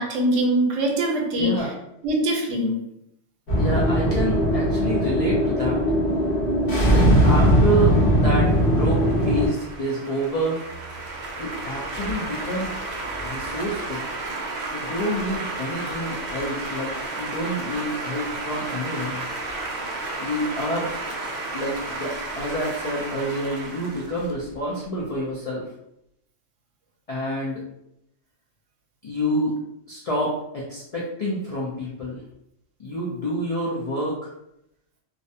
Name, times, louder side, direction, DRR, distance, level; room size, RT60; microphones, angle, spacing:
voice 1, 0.0-1.5 2.0-2.8, right 1 dB, 80° right, 0 dB, 1.0 m, -22 dB
voice 2, 1.4-1.7 3.6-5.9 6.8-10.6 11.4-12.7 13.2-14.1 14.7-19.2 20.2-20.9 21.5-25.7 27.1-27.6 29.0-29.5 29.9-32.2 32.8-34.3, equal, 70° left, -5 dB, 0.3 m, -28 dB
sound 1, 3.5-9.5, equal, 55° left, 0.9 m, -19 dB
sound 2, 8.2-24.9, right 2 dB, 65° right, 0.4 m, -33 dB
2.4 x 2.1 x 2.7 m, 0.80 s
omnidirectional pair, 1.3 m